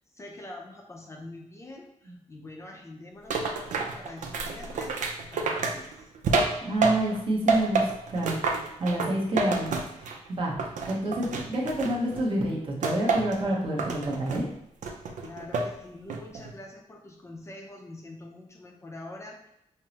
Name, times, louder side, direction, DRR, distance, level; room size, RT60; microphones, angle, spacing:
voice 1, 0.1-6.1 11.2-11.3 15.2-19.5, left 2 dB, 25° left, 0 dB, 0.5 m, -45 dB
sound 1, 3.3-7.2 7.5-10.3 10.6-12.2 12.8-13.4 13.8-14.4 14.8-15.7 16.1-16.5, right 4 dB, 90° right, 0.5 m, -28 dB
voice 2, 6.6-8.4 8.8-10.5 10.9-14.5, right 1 dB, 45° right, -3 dB, 0.9 m, -28 dB
5.3 x 2.0 x 2.8 m, 0.81 s
wide cardioid pair, 165°, 12 cm